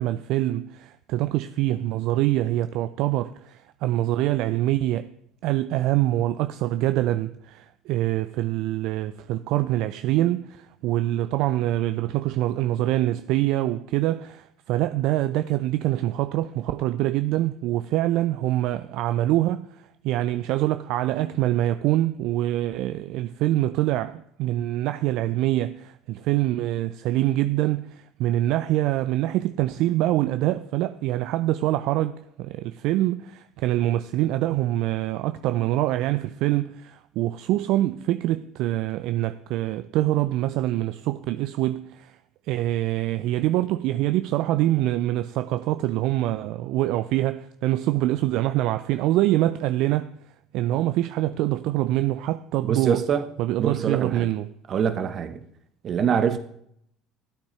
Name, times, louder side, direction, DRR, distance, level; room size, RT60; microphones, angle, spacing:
voice 1, 0.0-5.1 5.4-42.2 42.5-50.1 50.5-53.0 53.4-54.5, right 15 dB, 65° right, 0.3 m, -25 dB
voice 2, 52.6-53.2 53.6-54.3 54.7-55.4 55.8-56.4, right 7 dB, 45° right, 0.9 m, -24 dB
13.0 x 8.8 x 3.2 m
hypercardioid pair, 70°, 0 cm